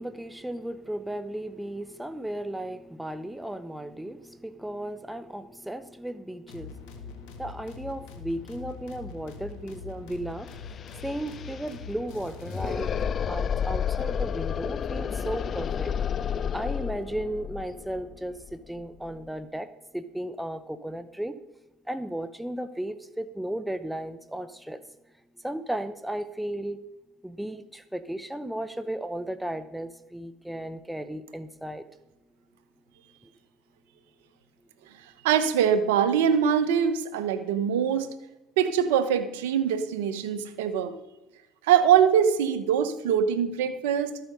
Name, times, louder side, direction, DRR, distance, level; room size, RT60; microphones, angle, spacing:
voice 1, 0.0-12.9 13.3-15.9 16.5-19.7 19.9-21.4 21.9-24.8 25.4-26.8 27.2-31.9, right 1 dB, 5° right, 11 dB, 0.8 m, -35 dB
sound 1, 6.5-13.2, left 5 dB, 75° left, 1.7 m, -43 dB
sound 2, 10.1-10.2 10.4-19.2, left 7 dB, 45° left, 0.5 m, -31 dB
voice 2, 35.2-38.1 38.6-40.9 41.7-44.2, right 8 dB, 90° right, 11 dB, 1.0 m, -23 dB
13.5 x 8.1 x 5.3 m, 1.0 s
supercardioid pair, 80°, 0 cm